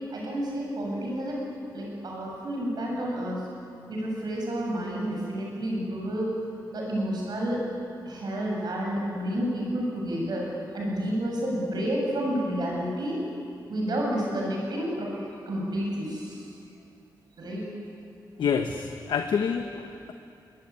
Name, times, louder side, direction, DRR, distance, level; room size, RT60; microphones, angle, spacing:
voice 1, 0.1-1.4 1.7-3.4 3.9-6.3 6.7-7.6 8.0-10.5 10.7-13.2 13.7-16.4 17.4-17.7, equal, 65° right, -2 dB, 7.9 m, -30 dB
voice 2, 18.4-20.1, left 6 dB, 90° left, 6 dB, 1.1 m, -28 dB
23.0 x 20.0 x 9.8 m, 2.6 s
wide cardioid pair, 110°, 8 cm